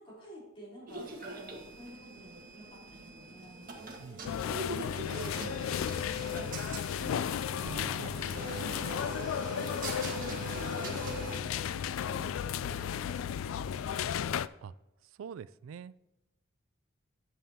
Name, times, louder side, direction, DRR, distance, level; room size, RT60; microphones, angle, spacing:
voice 1, 0.0-14.0, right 1 dB, 30° left, -5 dB, 3.5 m, -51 dB
sound 1, 0.9-11.4, right 2 dB, 45° right, 1.6 m, -42 dB
sound 2, 4.2-14.5, left 8 dB, 90° left, 0.3 m, -34 dB
voice 2, 7.6-8.2 14.6-14.7 15.2-15.9, right 7 dB, 85° right, 17 dB, 0.3 m, -44 dB
11.0 x 7.3 x 2.8 m, 0.96 s
head